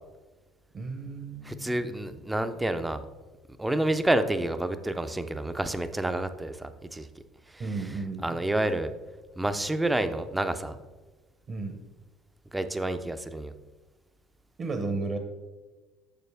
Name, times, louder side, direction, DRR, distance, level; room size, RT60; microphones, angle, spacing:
voice 1, 0.7-2.0 7.6-8.4 11.5-11.8 14.6-15.2, right 3 dB, 30° right, 5 dB, 0.8 m, -34 dB
voice 2, 1.4-3.0 3.6-7.1 7.5-7.6 8.2-8.9 9.4-10.8 12.5-13.5, right 1 dB, 10° right, 10 dB, 0.4 m, -29 dB
6.8 x 6.6 x 3.4 m, 1.2 s
cardioid pair, 140°, 0 cm